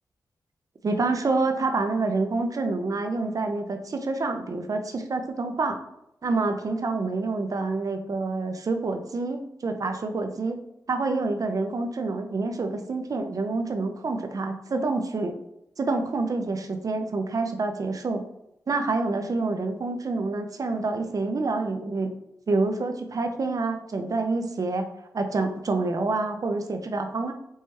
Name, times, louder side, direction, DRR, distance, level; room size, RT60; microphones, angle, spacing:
voice 1, 0.8-5.8 6.2-10.6 10.9-15.3 15.8-18.2 18.7-22.1 22.5-24.9 25.1-27.3, right 3 dB, 55° right, 6 dB, 0.6 m, -27 dB
4.6 x 2.2 x 3.0 m, 0.84 s
cardioid pair, 45°, 7 cm